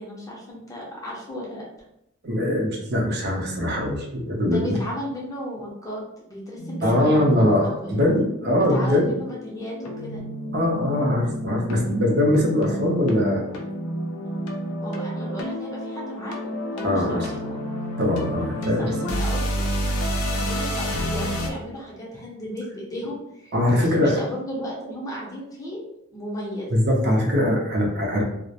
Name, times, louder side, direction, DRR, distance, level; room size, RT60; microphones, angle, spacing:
voice 1, 0.0-1.7 4.4-8.0 8.6-10.2 14.8-17.6 18.6-19.7 20.0-25.8 26.1-26.7, equal, 15° left, -4 dB, 0.6 m, -35 dB
voice 2, 2.2-4.8 6.8-9.1 10.5-13.4 16.8-17.3 18.0-18.9 20.5-20.6 23.5-24.2 26.7-28.2, left 1 dB, 50° right, -1 dB, 0.5 m, -22 dB
sound 1, 6.6-21.5, equal, 75° left, 0.4 m, -30 dB
2.3 x 2.0 x 2.7 m, 0.82 s
head